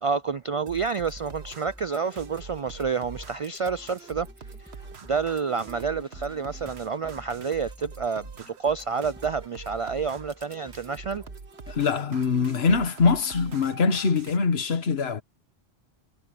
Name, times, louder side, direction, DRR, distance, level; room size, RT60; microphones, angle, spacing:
voice 1, 0.0-4.3 5.0-11.2, right 5 dB, 55° right, 0.3 m, -29 dB
sound 1, 0.7-14.4, right 4 dB, 85° right, 1.6 m, -45 dB
sound 2, 1.2-11.9, equal, 5° right, 2.8 m, -49 dB
voice 2, 11.7-15.2, left 5 dB, 75° left, 1.6 m, -23 dB
omnidirectional pair, 1.1 m